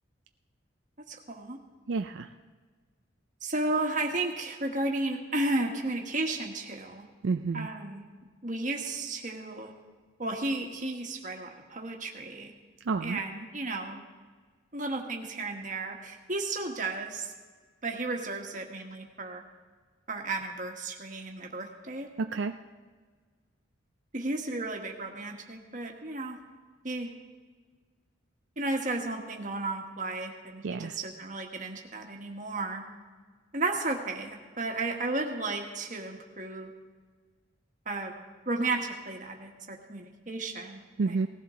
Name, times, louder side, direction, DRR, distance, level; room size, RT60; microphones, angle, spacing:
voice 1, 1.1-1.6 3.4-7.0 7.5-8.1 8.4-9.7 10.2-12.5 13.0-14.0 14.7-17.3 17.8-19.4 20.1-22.1 24.1-26.4 26.8-27.1 28.6-32.8 33.5-36.7 37.8-38.1 38.4-40.8 41.0-41.3, right 2 dB, 40° right, 2 dB, 1.5 m, -33 dB
voice 2, 1.9-2.3 7.2-7.7 12.9-13.2 22.2-22.6 30.6-31.0 41.0-41.3, right 4 dB, 70° right, 7 dB, 0.4 m, -29 dB
18.5 x 15.5 x 3.8 m, 1.5 s
head